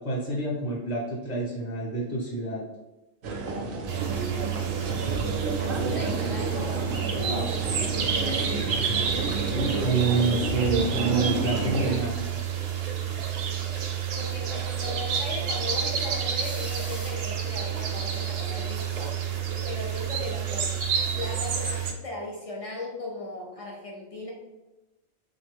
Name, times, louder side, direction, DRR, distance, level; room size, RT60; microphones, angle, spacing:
voice 1, 0.0-2.6 9.5-12.1, right 3 dB, 40° left, -4 dB, 0.7 m, -27 dB
sound 1, 3.2-12.0, right 3 dB, 60° right, 0.6 m, -31 dB
sound 2, 3.9-21.9, right 8 dB, 75° right, 0.9 m, -29 dB
voice 2, 4.9-8.2 14.1-19.2 19.7-20.7 21.1-24.3, left 2 dB, 70° left, -2 dB, 0.3 m, -38 dB
sound 3, 6.0-17.6, equal, ahead, 0.5 m, -51 dB
3.1 x 2.4 x 3.4 m, 1.0 s
omnidirectional pair, 1.3 m